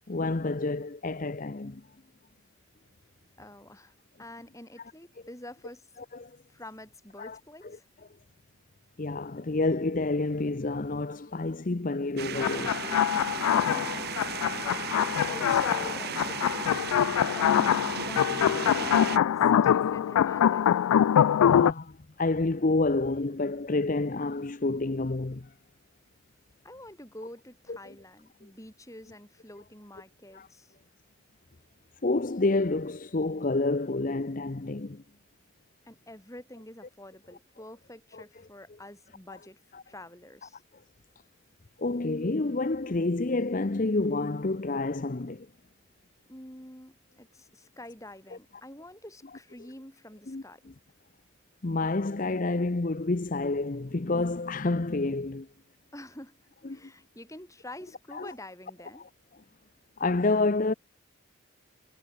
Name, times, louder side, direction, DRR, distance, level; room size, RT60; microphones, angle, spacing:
voice 1, 0.1-1.8 6.1-6.4 7.2-7.8 9.0-12.9 15.8-15.9 16.2-16.3 19.5-19.8 21.5-25.5 27.7-27.9 30.3-30.5 32.0-35.0 38.1-38.2 39.3-39.4 39.7-39.8 41.8-45.5 50.3-50.4 51.6-55.5 56.6-56.9 58.1-58.3 60.0-60.7, left 2 dB, 40° left, 0.7 m, -29 dB
voice 2, 3.4-5.9 6.5-7.9 13.5-14.9 15.2-20.7 26.6-30.7 35.8-39.6 39.9-40.6 46.3-50.6 55.9-56.4 56.7-59.1, left 1 dB, 15° left, 5.1 m, -47 dB
sound 1, 12.2-19.2, right 7 dB, 45° right, 0.9 m, -35 dB
sound 2, 12.4-21.7, left 9 dB, 85° left, 0.3 m, -24 dB
head